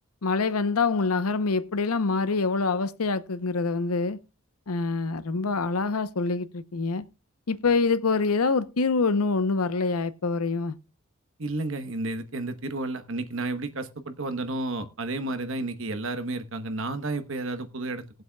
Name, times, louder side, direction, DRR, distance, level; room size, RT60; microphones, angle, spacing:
voice 1, 0.2-4.2 4.7-7.1 7.5-10.7, left 4 dB, 80° left, 0.8 m, -25 dB
voice 2, 11.4-18.0, right 2 dB, 60° right, 1.1 m, -31 dB
20.5 x 7.8 x 2.3 m
head